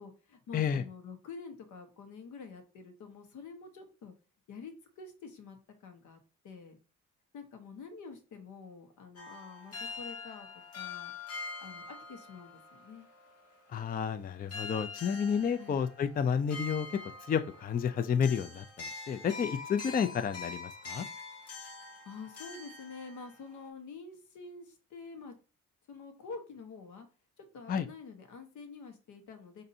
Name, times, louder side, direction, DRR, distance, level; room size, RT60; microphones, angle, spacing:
voice 1, 0.0-4.1 4.5-6.8 7.3-10.5 10.7-11.1 11.6-11.8 12.1-13.1 15.6-15.8 22.0-25.3 25.9-27.1 27.4-29.6, left 4 dB, 75° left, 6 dB, 1.1 m, -47 dB
sound 1, 9.2-14.2 14.5-23.7, left 4 dB, 55° left, 1.5 m, -45 dB
voice 2, 13.7-16.9 17.3-21.1 27.7-27.9, left 7 dB, 30° left, 9 dB, 0.4 m, -31 dB
5.1 x 2.6 x 2.7 m, 0.35 s
cardioid pair, 90°, 30 cm